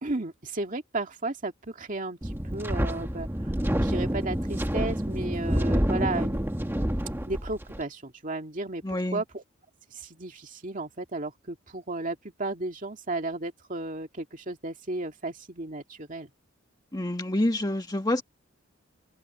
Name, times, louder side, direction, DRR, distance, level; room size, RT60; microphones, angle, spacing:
voice 1, 0.0-6.5 7.3-9.4 9.9-16.3, right 2 dB, 40° right, 2.3 m, -34 dB
Wind, 2.2-7.8, equal, 10° right, 1.2 m, -28 dB
voice 2, 8.8-9.2 16.9-18.2, left 1 dB, 20° left, 1.5 m, -27 dB
open air
head